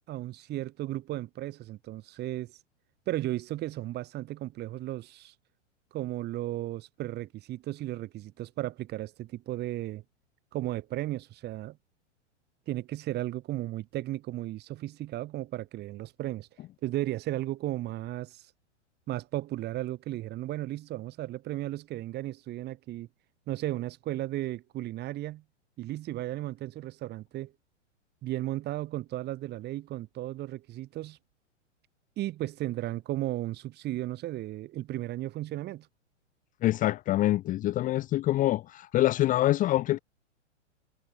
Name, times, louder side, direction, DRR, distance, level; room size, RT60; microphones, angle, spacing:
voice 1, 0.1-2.5 3.1-5.3 5.9-10.0 10.5-11.8 12.7-16.5 16.8-18.4 19.1-23.1 23.5-25.4 25.8-27.5 28.2-31.2 32.2-35.9, right 15 dB, 25° right, 5.2 m, -35 dB
voice 2, 36.6-40.0, left 15 dB, 20° left, 1.2 m, -25 dB
figure-of-eight pair, 105°, 37 cm